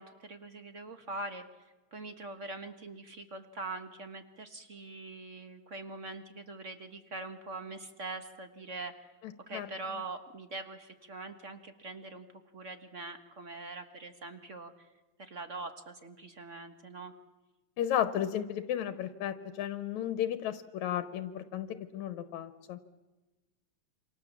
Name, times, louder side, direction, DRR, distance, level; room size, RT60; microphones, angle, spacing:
voice 1, 0.0-1.4 1.9-9.1 9.5-12.3 12.5-14.9 15.2-17.1, right 3 dB, 40° right, 8 dB, 1.1 m, -43 dB
voice 2, 17.8-21.7 21.9-22.8, left 10 dB, 80° left, 11 dB, 2.4 m, -33 dB
27.5 x 26.0 x 7.4 m, 1.2 s
omnidirectional pair, 3.3 m